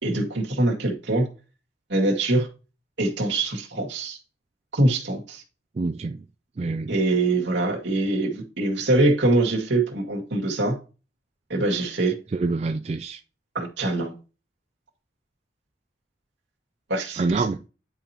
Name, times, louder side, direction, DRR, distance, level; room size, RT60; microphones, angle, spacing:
voice 1, 0.0-1.3 1.9-2.5 3.0-4.2 4.7-5.4 6.9-10.8 11.5-12.2 13.5-14.1 16.9-17.5, right 2 dB, 80° right, 2.1 m, -23 dB
voice 2, 5.8-6.2 6.6-6.9 12.3-13.2 17.2-17.6, right 3 dB, 35° right, 0.3 m, -26 dB
10.0 x 5.0 x 2.9 m
head